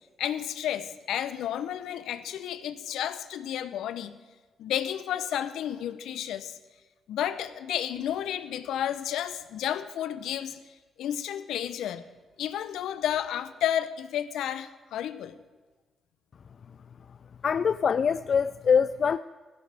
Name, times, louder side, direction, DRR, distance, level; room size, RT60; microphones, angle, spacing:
voice 1, 0.2-4.2 4.6-6.6 7.1-10.6 11.0-12.0 12.4-15.4, left 10 dB, 75° left, 0.8 m, -31 dB
voice 2, 17.4-19.2, left 6 dB, 60° left, 0.3 m, -24 dB
16.5 x 15.5 x 3.5 m
hypercardioid pair, 45°, 0 cm